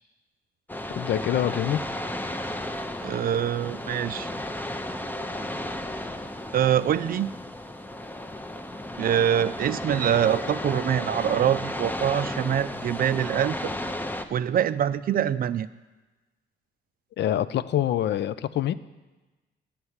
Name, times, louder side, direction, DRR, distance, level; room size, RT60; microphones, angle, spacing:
sound 1, 0.7-14.2, left 1 dB, 10° left, 0.6 m, -34 dB
voice 1, 0.9-1.9 17.2-18.7, left 11 dB, 60° left, 15 dB, 0.4 m, -25 dB
voice 2, 3.0-4.3 6.5-7.3 9.0-13.7 14.3-15.7, right 9 dB, 50° right, 14 dB, 0.4 m, -24 dB
8.6 x 5.7 x 8.0 m, 1.2 s
cardioid pair, 90°, 20 cm